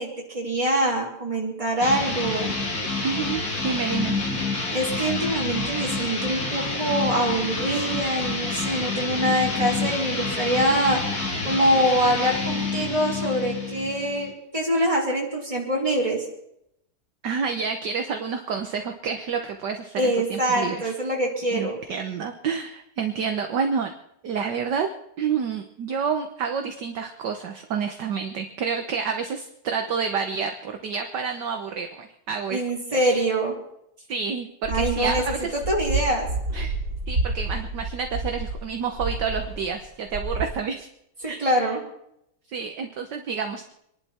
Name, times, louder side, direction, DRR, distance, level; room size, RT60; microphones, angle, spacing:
voice 1, 0.0-2.6 4.7-11.0 11.4-16.3 20.0-21.8 32.5-33.5 34.7-36.3 41.2-41.8, right 1 dB, 15° right, -3 dB, 4.3 m, -24 dB
sound 1, 1.8-14.3, left 3 dB, 40° left, 3.1 m, -28 dB
voice 2, 3.0-4.2 17.2-20.9 21.5-23.9 24.2-24.9 25.2-32.6 32.9-33.3 34.1-35.5 36.5-36.7 37.1-40.9 41.3-41.7 42.5-43.7, right 6 dB, 55° right, 5 dB, 1.5 m, -29 dB
sound 2, 34.6-39.8 40.1-40.4, right 3 dB, 40° right, 3.5 m, -29 dB
26.5 x 11.5 x 4.3 m, 0.78 s
omnidirectional pair, 2.4 m